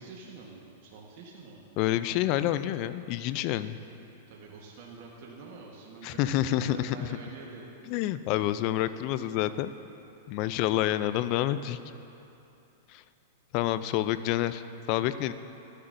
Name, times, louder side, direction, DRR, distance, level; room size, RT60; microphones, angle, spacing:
voice 1, 0.0-1.6 3.6-3.7 4.3-7.7 10.6-10.7, right 4 dB, 55° right, -3 dB, 1.2 m, -46 dB
voice 2, 1.8-3.7 6.0-6.9 7.9-9.7 10.3-11.8 12.9-13.0 13.5-14.6 14.9-15.3, left 13 dB, 45° left, 14 dB, 0.3 m, -28 dB
12.5 x 9.7 x 2.6 m, 2.8 s
hypercardioid pair, 130°, 0 cm